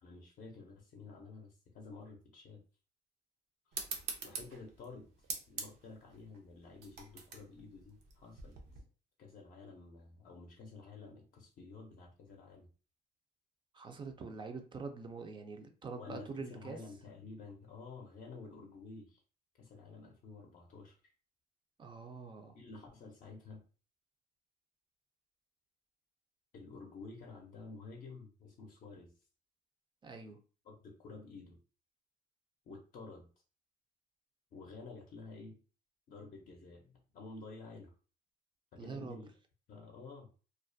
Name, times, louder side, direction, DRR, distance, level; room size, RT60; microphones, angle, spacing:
voice 1, 0.0-2.6 3.7-3.9 4.2-5.1 5.5-8.6 9.2-12.7 15.9-19.2 19.6-21.0 22.5-23.6 26.5-29.1 30.6-31.6 32.7-33.3 34.5-35.6 36.1-37.9 38.7-39.3 39.7-40.3, left 3 dB, 55° left, 0.5 m, -51 dB
sound 1, 3.7-8.8, right 5 dB, 80° right, 0.6 m, -45 dB
voice 2, 13.7-16.8 21.8-22.6 30.0-30.4 38.8-39.2, right 4 dB, 30° right, 0.4 m, -45 dB
2.3 x 2.1 x 2.5 m
cardioid pair, 110°, 17 cm